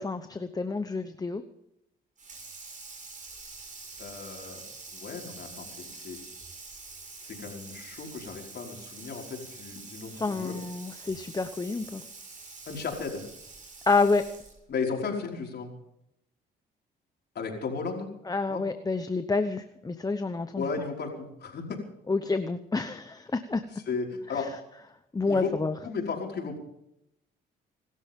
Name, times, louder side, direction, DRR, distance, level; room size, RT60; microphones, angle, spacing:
voice 1, 0.0-1.4 10.2-12.0 13.9-14.2 18.3-20.6 22.1-23.6 25.1-25.7, left 3 dB, 20° left, 9 dB, 0.9 m, -28 dB
Water tap faucet / Sink (filling or washing), 2.2-14.7, right 3 dB, 40° right, 6.8 m, -46 dB
voice 2, 4.0-4.6 4.9-6.2 7.2-10.6 12.7-13.2 14.7-15.7 17.4-18.1 18.5-18.6 20.6-21.8 23.7-24.5 25.3-25.5 25.8-26.6, left 5 dB, 60° left, 0 dB, 5.2 m, -35 dB
27.0 x 13.0 x 3.7 m, 0.80 s
cardioid pair, 90°, 20 cm